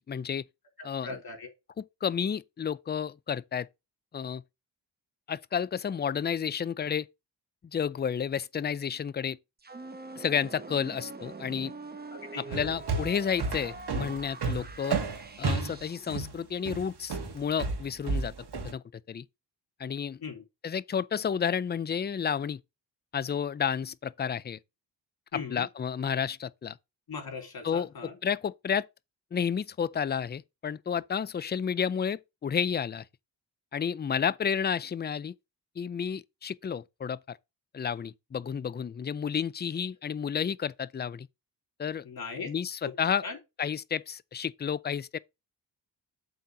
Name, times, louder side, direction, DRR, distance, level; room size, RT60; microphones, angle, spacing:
voice 1, 0.1-0.4 0.8-1.2 1.8-3.7 4.1-4.4 5.3-7.1 7.7-9.4 10.2-11.8 12.4-15.0 15.4-18.3 18.6-19.2 19.8-20.2 20.6-22.6 23.1-24.6 25.3-26.8 27.6-27.9 28.2-28.9 29.3-33.0 33.7-35.3 35.8-37.4 37.7-41.3 41.8-42.0 42.5-43.2 43.6-45.2, left 7 dB, 25° left, 0.4 m, -31 dB
voice 2, 0.8-1.5 12.3-12.7 20.2-20.4 25.3-25.7 27.1-28.1 42.0-42.5 42.8-42.9 43.2-43.4, left 4 dB, 55° left, 3.3 m, -39 dB
sound 1, 9.6-16.3, right 3 dB, 20° right, 1.0 m, -44 dB
sound 2, 12.5-18.7, right 4 dB, 60° right, 2.0 m, -32 dB
7.8 x 4.2 x 6.1 m
cardioid pair, 95°, 43 cm